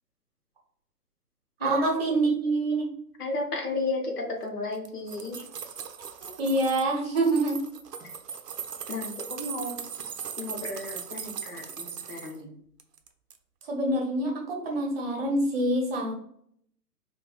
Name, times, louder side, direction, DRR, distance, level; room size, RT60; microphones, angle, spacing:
voice 1, 1.6-2.9 6.2-7.6 13.7-16.1, right 2 dB, 40° right, 0 dB, 0.7 m, -26 dB
voice 2, 3.2-5.4 8.9-9.8 10.4-12.6, left 2 dB, 70° left, 2 dB, 0.9 m, -33 dB
sound 1, 4.7-6.9 7.2-12.4 12.8-13.4 13.6-13.7, right 7 dB, 75° right, 0.5 m, -39 dB
3.1 x 2.3 x 2.3 m, 0.67 s
figure-of-eight pair, 125°, 48 cm